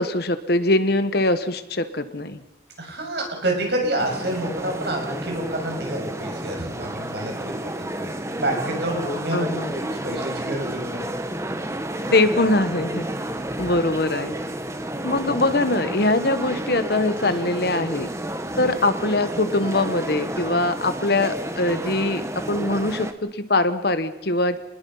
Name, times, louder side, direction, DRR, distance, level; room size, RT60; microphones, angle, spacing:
voice 1, 0.0-2.4 9.3-9.7 12.1-13.1 13.6-14.3 15.0-18.1 18.6-22.2 22.5-24.6, left 2 dB, 55° left, 11 dB, 1.3 m, -22 dB
voice 2, 2.8-7.7 8.0-11.0, right 1 dB, 55° right, 2 dB, 6.6 m, -28 dB
sound 1, 4.0-23.1, right 1 dB, 15° right, 1.3 m, -31 dB
28.5 x 21.0 x 5.6 m, 1.0 s
head